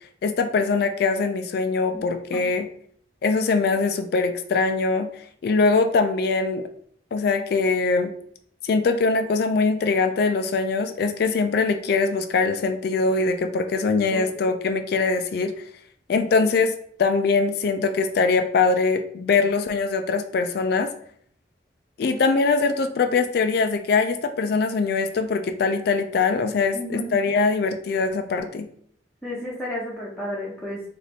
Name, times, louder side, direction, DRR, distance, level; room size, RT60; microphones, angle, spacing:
voice 1, 0.2-2.7 3.2-5.1 5.4-6.6 7.1-8.1 8.6-15.5 16.1-20.9 22.0-28.7, left 4 dB, 60° left, 8 dB, 0.3 m, -22 dB
voice 2, 26.7-27.2 29.2-30.8, equal, 5° left, -7 dB, 0.7 m, -32 dB
3.3 x 2.6 x 4.0 m, 0.63 s
head